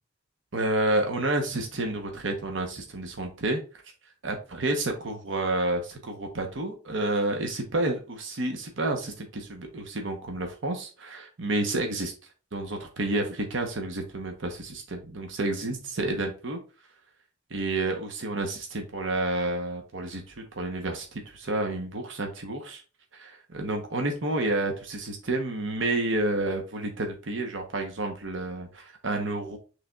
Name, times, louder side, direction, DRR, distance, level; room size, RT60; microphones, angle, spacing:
voice 1, 0.5-3.6 4.2-12.1 12.5-16.6 17.5-22.8 23.1-29.6, right 2 dB, 70° right, 3 dB, 0.8 m, -30 dB
6.3 x 3.2 x 2.3 m, 0.34 s
head